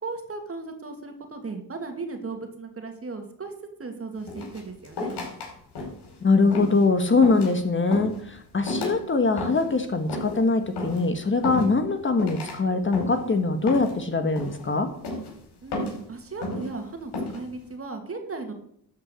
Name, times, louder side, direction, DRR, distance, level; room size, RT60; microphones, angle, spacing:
voice 1, 0.0-3.5 3.8-5.2 15.6-18.5, right 3 dB, 35° right, 5 dB, 2.4 m, -36 dB
sound 1, 4.3-5.5 5.8-6.1 6.5-6.8 7.2-7.6 7.9-8.2 8.7-9.0 9.4-9.7 10.1-10.4 10.8-11.0 11.4-11.9 12.2-12.6 12.9-13.3 13.7-14.0 14.4-14.7 15.0-15.3 15.7-16.0 16.4-16.7 17.1-17.4, left 2 dB, 80° left, 4.7 m, -32 dB
voice 2, 6.2-14.9, left 3 dB, 30° left, 7 dB, 1.3 m, -22 dB
12.0 x 5.5 x 8.1 m, 0.68 s
cardioid pair, 90°, 40 cm